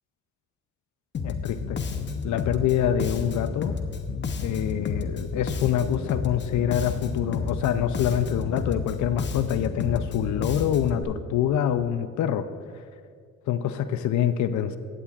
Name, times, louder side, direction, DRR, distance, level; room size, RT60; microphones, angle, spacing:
Bass guitar, 1.1-11.0, left 5 dB, 35° left, 0.8 m, -31 dB
voice 1, 1.2-1.8 2.2-3.7 4.4-12.5 13.5-14.8, left 10 dB, 70° left, 11 dB, 0.5 m, -25 dB
14.0 x 8.9 x 2.4 m, 2.1 s
cardioid pair, 90°, 30 cm